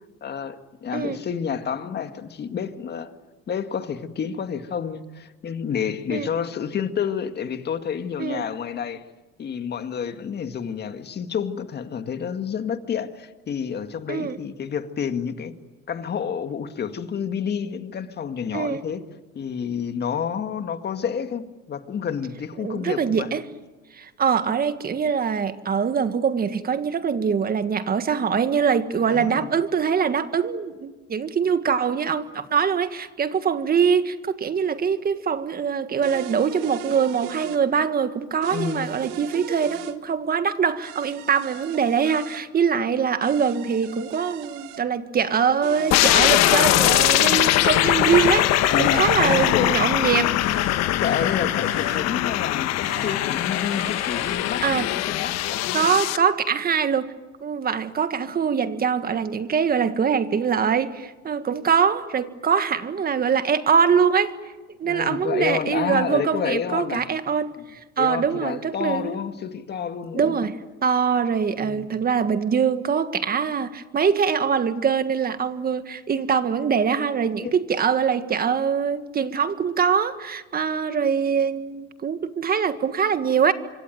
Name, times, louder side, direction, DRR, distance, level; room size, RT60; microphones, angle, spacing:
voice 1, 0.2-3.1 3.5-9.0 9.4-15.6 15.9-19.0 19.3-23.3 29.1-29.5 38.5-38.9 48.7-49.8 51.0-56.0 64.8-67.0 68.0-70.4 71.6-71.9 77.4-77.5, left 7 dB, 35° left, 2.0 m, -29 dB
voice 2, 22.6-23.4 24.0-50.4 54.6-54.9 55.7-57.1 57.4-64.3 64.8-69.1 70.1-70.6 70.8-83.5, right 6 dB, 30° right, 1.7 m, -23 dB
sound 1, 36.0-37.6 38.4-40.0 40.8-42.4 43.2-44.8 45.6-47.2 48.0-49.5 50.4-52.0 52.8-54.4, right 13 dB, 80° right, 1.9 m, -38 dB
sound 2, 45.9-56.2, left 14 dB, 60° left, 1.3 m, -21 dB
25.5 x 24.5 x 9.3 m
cardioid pair, 120°, 29 cm